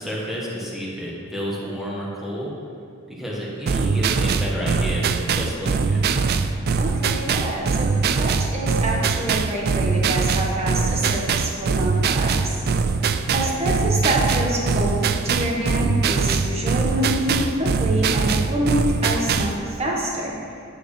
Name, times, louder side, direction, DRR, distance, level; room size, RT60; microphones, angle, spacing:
voice 1, 0.0-2.5 3.1-6.1 13.2-13.6, equal, ahead, -6 dB, 1.6 m, -30 dB
sound 1, 3.7-19.6, right 5 dB, 50° right, 0.4 m, -22 dB
voice 2, 6.7-12.6 13.3-20.3, right 1 dB, 30° right, -3 dB, 1.5 m, -26 dB
9.1 x 9.1 x 3.3 m, 2.4 s
head